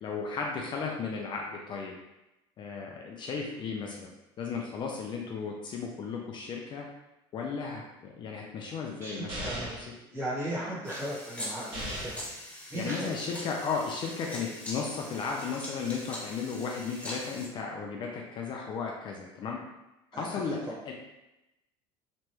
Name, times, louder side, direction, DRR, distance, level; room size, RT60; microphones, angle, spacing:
voice 1, 0.0-1.9 2.6-4.1 4.4-6.8 7.3-7.8 8.2-9.9 12.7-19.6 20.1-20.9, left 5 dB, 40° left, 0 dB, 0.4 m, -35 dB
voice 2, 9.0-9.7 10.1-12.2 12.7-13.1 20.1-20.2 20.6-20.8, right 1 dB, 20° right, -7 dB, 1.3 m, -36 dB
sound 1, 9.3-9.9 11.7-12.3, equal, 45° right, 1.2 m, -37 dB
sound 2, 10.8-17.5, left 1 dB, 10° left, 0.8 m, -42 dB
3.0 x 2.2 x 3.0 m, 0.96 s
supercardioid pair, 120°, 13 cm